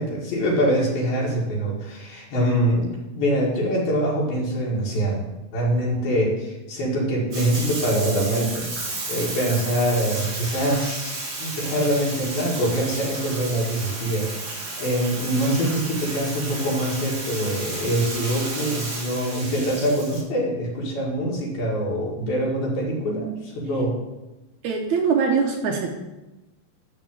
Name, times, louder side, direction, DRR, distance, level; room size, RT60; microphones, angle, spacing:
voice 1, 0.0-5.3 5.5-8.7 9.1-11.1 11.4-24.0, right 1 dB, 70° left, -5 dB, 3.9 m, -24 dB
Bathtub (filling or washing), 7.3-20.2, right 2 dB, 40° right, 2.7 m, -32 dB
voice 2, 24.6-25.9, right 5 dB, 75° right, 1 dB, 1.8 m, -22 dB
12.0 x 4.3 x 7.6 m, 1.0 s
omnidirectional pair, 4.5 m